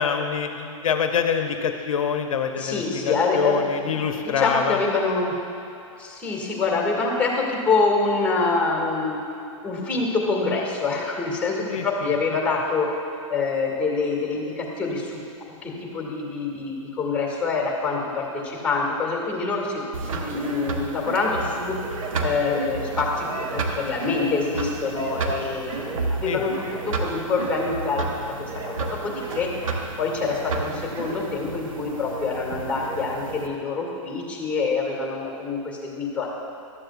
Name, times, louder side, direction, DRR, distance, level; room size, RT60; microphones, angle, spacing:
voice 1, 0.0-4.8 11.7-12.4 26.2-26.4, left 6 dB, 85° left, 6 dB, 0.6 m, -26 dB
voice 2, 2.6-4.0 4.4-5.3 6.0-9.2 9.6-12.9 13.3-15.2 15.6-19.8 20.1-21.7 22.2-25.8 26.1-28.3 28.7-28.8 29.0-29.5 30.0-36.3, left 4 dB, 5° left, -2 dB, 2.1 m, -25 dB
sound 1, 19.9-33.5, right 3 dB, 80° right, 0.9 m, -31 dB
12.5 x 7.7 x 2.4 m, 2.8 s
hypercardioid pair, 120°, 17 cm